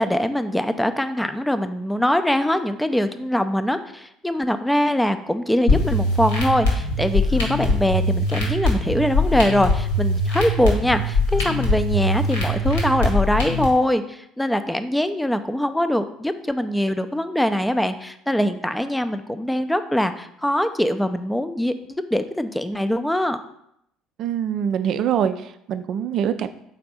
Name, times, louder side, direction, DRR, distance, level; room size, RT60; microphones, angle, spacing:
voice 1, 0.0-23.4, equal, 5° left, 10 dB, 0.5 m, -23 dB
sound 1, 5.7-13.7, left 1 dB, 75° left, 1.7 m, -22 dB
voice 2, 24.2-26.5, right 8 dB, 50° right, 11 dB, 0.4 m, -24 dB
4.3 x 4.1 x 5.7 m, 0.76 s
figure-of-eight pair, 60°, 0 cm